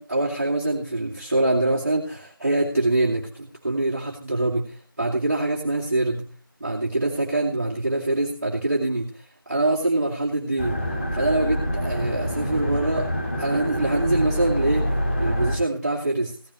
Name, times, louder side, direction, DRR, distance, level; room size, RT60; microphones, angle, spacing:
voice 1, 0.0-6.3 6.6-10.8 11.1-13.1 13.4-16.4, right 2 dB, 40° right, -4 dB, 2.2 m, -24 dB
sound 1, 10.6-15.6, equal, 35° left, 2.5 m, -26 dB
16.0 x 12.0 x 3.1 m, 0.41 s
figure-of-eight pair, 170°, 12 cm